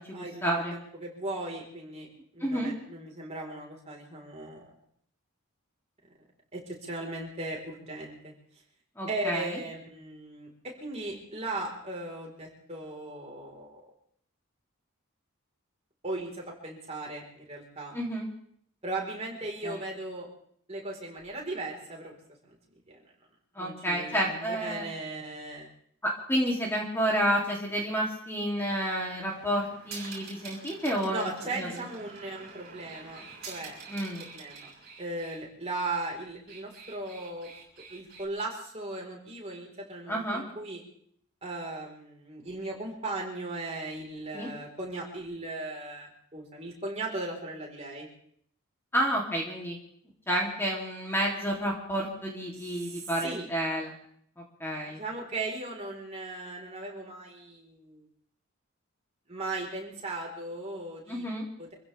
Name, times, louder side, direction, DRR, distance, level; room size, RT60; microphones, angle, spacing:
voice 1, 0.1-0.7 2.4-2.7 9.0-9.6 17.9-18.3 19.6-19.8 23.5-24.9 26.0-31.7 33.9-34.2 40.1-40.4 44.3-44.5 48.9-49.8 50.3-53.9 54.6-55.0 61.1-61.5, equal, 10° left, -2 dB, 3.0 m, -30 dB
voice 2, 0.7-2.1 2.3-4.7 6.5-8.3 9.1-13.8 16.0-17.9 18.8-20.3 20.7-22.1 22.5-22.6 22.9-23.0 23.6-25.7 31.1-33.8 34.2-34.7 35.0-37.5 37.9-40.8 41.4-48.1 52.8-53.5 54.9-58.1 59.3-61.2 61.6-61.7, right 2 dB, 30° right, -1 dB, 4.3 m, -37 dB
sound 1, 29.2-35.4 36.3-38.3, right 4 dB, 45° right, 6.8 m, -47 dB
26.5 x 15.5 x 3.5 m, 0.65 s
head